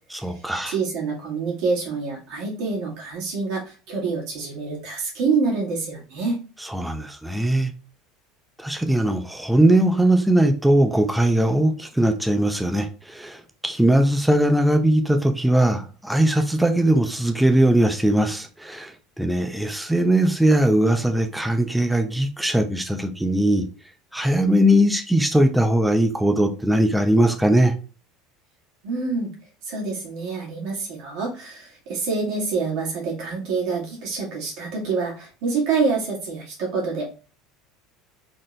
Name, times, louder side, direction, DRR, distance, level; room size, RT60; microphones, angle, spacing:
voice 1, 0.1-0.7 6.7-7.7 8.6-23.7 24.1-27.7, right 1 dB, 5° right, 0.7 m, -20 dB
voice 2, 0.7-6.4 28.8-29.3 29.6-37.1, right 4 dB, 55° right, 2.2 m, -26 dB
4.3 x 3.7 x 3.3 m
figure-of-eight pair, 70°, 0 cm